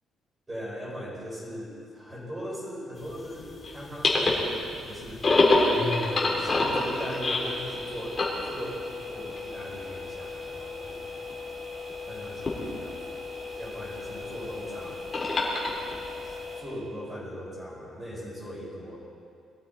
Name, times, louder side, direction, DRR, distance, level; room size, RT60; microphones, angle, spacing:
voice 1, 0.5-5.2 6.4-11.1 12.1-13.2 13.6-15.0 16.2-19.0, equal, 15° right, -5 dB, 4.9 m, -39 dB
sound 1, 3.0-16.6, left 2 dB, 25° left, 2.7 m, -29 dB
21.5 x 14.0 x 4.3 m, 2.3 s
cardioid pair, 165°, 0 cm